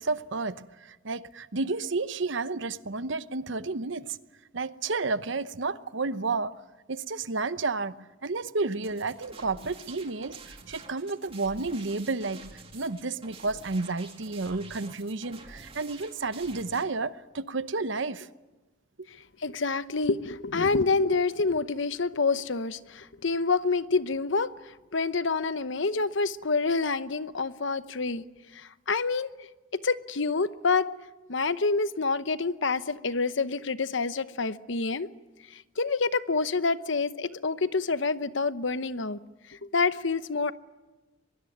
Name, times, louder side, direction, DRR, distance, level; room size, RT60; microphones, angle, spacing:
voice 1, 0.0-4.1 4.5-6.6 6.9-18.3, right 3 dB, 65° right, 0.9 m, -31 dB
sound 1, 8.8-16.8, right 3 dB, 30° right, 2.4 m, -48 dB
voice 2, 19.4-24.5 24.9-28.2 28.5-29.3 29.7-30.9 31.3-35.1 35.5-39.2 39.5-40.5, left 4 dB, 65° left, 0.9 m, -27 dB
23.5 x 22.0 x 9.4 m
head